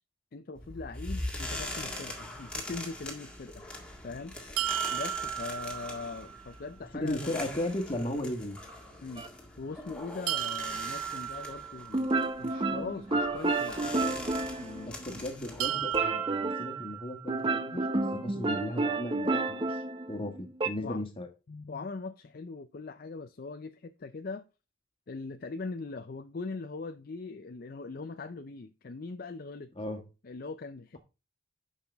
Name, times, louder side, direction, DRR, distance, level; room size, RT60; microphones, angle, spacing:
voice 1, 0.3-3.7 4.0-4.4 4.9-7.4 9.0-9.3 9.6-15.2 20.8-21.0 21.5-24.4 25.1-29.7 30.2-31.0, left 3 dB, 45° left, 0.4 m, -41 dB
sound 1, 0.5-16.1, left 1 dB, 5° left, 1.8 m, -42 dB
sound 2, 4.6-6.5 10.3-12.3 15.6-17.6, right 11 dB, 90° right, 0.3 m, -35 dB
voice 2, 6.9-8.6 14.8-17.9 18.1-19.8 20.1-21.3 29.7-30.0, left 1 dB, 25° left, 1.6 m, -35 dB
sound 3, 9.2-9.3 11.9-15.2 15.9-16.8 17.3-20.7, right 3 dB, 25° right, 0.6 m, -30 dB
10.5 x 5.8 x 3.5 m
head